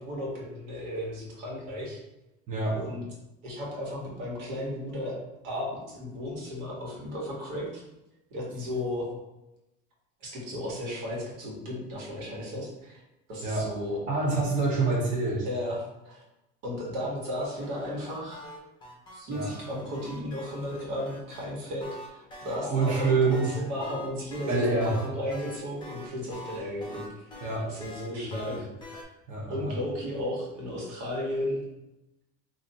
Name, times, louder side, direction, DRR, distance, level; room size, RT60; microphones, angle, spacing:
voice 1, 0.0-2.0 2.7-3.0 3.4-7.8 8.3-9.1 10.2-13.0 13.3-14.0 15.4-16.2 16.6-18.4 19.1-27.3 27.7-28.7 29.0-29.1 29.5-31.7, left 1 dB, 65° right, -3 dB, 1.5 m, -34 dB
voice 2, 2.5-2.8 13.4-13.6 14.1-15.5 19.3-19.5 22.7-23.5 24.5-25.0 27.4-27.6 28.2-28.7 29.3-29.7, right 3 dB, 25° right, -5 dB, 0.8 m, -26 dB
sound 1, 17.4-21.4 21.8-29.0, left 1 dB, 15° left, 0.7 m, -44 dB
sound 2, 22.6-25.1, right 1 dB, 50° left, 0.7 m, -49 dB
3.3 x 2.6 x 4.0 m, 0.94 s
cardioid pair, 160°, 29 cm